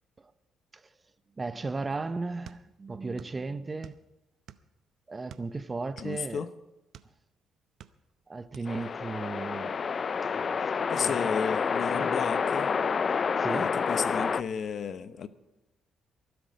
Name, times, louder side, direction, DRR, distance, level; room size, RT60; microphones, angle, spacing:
voice 1, 1.4-4.0 5.1-6.5 8.3-9.8 10.2-10.7 11.0-11.3 11.9-12.1 13.1-13.8 14.2-14.3, right 3 dB, 25° right, 0.7 m, -36 dB
sound 1, 2.4-3.4 3.6-4.8 5.3-7.2 7.6-8.2 8.5-8.7, right 10 dB, 70° right, 0.7 m, -49 dB
voice 2, 6.0-6.5 10.9-12.7 13.5-15.3, left 7 dB, 60° left, 0.8 m, -33 dB
sound 2, 8.7-14.4, left 5 dB, 45° left, 0.4 m, -28 dB
23.0 x 8.0 x 5.2 m
cardioid pair, 90°, 0 cm